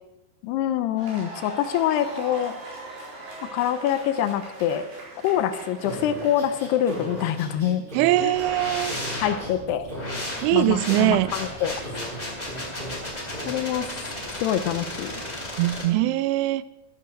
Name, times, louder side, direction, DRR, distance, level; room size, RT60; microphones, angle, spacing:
voice 1, 0.4-2.6 3.5-4.8 5.2-7.8 8.2-8.4 9.2-9.9 10.5-11.8 13.5-13.9 14.4-15.2, left 10 dB, 85° left, 11 dB, 2.8 m, -25 dB
sound 1, 1.0-7.5, right 2 dB, 60° right, 5.6 m, -41 dB
sound 2, 5.8-9.5 9.9-12.2 12.5-13.0 13.3-13.5, equal, 15° right, 3.1 m, -37 dB
voice 2, 7.9-9.0 10.4-11.3 15.6-16.6, right 15 dB, 90° right, 16 dB, 2.7 m, -22 dB
sound 3, 8.3-15.8, left 1 dB, 10° left, 2.9 m, -34 dB
13.0 x 9.8 x 6.4 m, 1.1 s
omnidirectional pair, 4.8 m